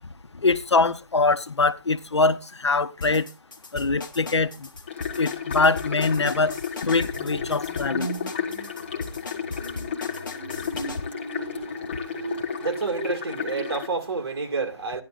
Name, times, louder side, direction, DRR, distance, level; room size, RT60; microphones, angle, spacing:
voice 1, 0.4-3.3 3.7-4.7 5.2-6.6 6.8-8.1, left 3 dB, 80° left, 1.0 m, -23 dB
sound 1, 3.0-11.0, left 4 dB, 45° left, 1.4 m, -37 dB
sound 2, 4.9-13.9, left 7 dB, 25° left, 1.1 m, -33 dB
sound 3, 7.1-13.1, right 3 dB, 40° right, 5.5 m, -38 dB
voice 2, 11.4-15.0, right 4 dB, 55° right, 2.4 m, -30 dB
15.0 x 10.5 x 2.5 m
figure-of-eight pair, 170°, 14 cm